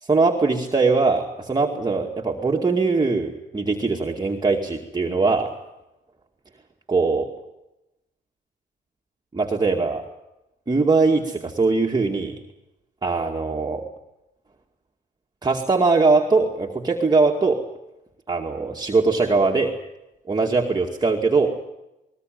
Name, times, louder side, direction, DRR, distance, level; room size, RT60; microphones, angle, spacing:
voice 1, 0.0-5.5 6.9-7.3 9.3-10.0 10.7-12.4 13.0-13.8 15.4-17.6 18.3-19.7 20.3-21.6, right 3 dB, 20° right, 0 dB, 2.3 m, -21 dB
20.5 x 20.0 x 9.2 m, 0.95 s
cardioid pair, 90°, 20 cm